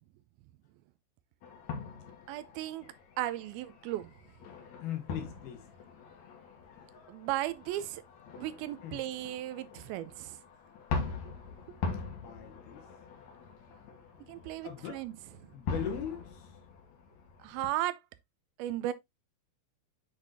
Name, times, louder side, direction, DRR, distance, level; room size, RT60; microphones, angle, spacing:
sound 1, 1.4-17.7, left 4 dB, 60° left, 2.3 m, -42 dB
voice 1, 2.3-2.9 3.2-4.1 7.1-8.0 8.4-10.4 14.3-15.1 15.4-15.5 17.4-18.0 18.6-18.9, right 14 dB, 80° right, 2.4 m, -35 dB
voice 2, 4.8-5.7 8.8-9.0 12.1-12.9 13.2-13.9 14.2-15.0 15.5-16.6, left 9 dB, 75° left, 3.3 m, -41 dB
8.2 x 5.2 x 2.6 m
omnidirectional pair, 4.5 m